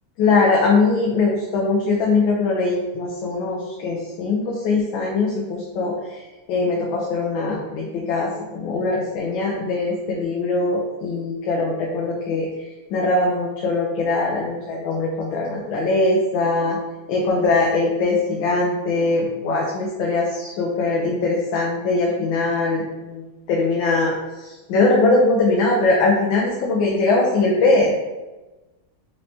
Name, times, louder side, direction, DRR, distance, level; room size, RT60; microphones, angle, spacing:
voice 1, 0.2-6.2 6.5-16.8 17.1-27.9, left 3 dB, 75° left, -2 dB, 1.3 m, -21 dB
4.3 x 3.2 x 2.7 m, 1.1 s
omnidirectional pair, 2.3 m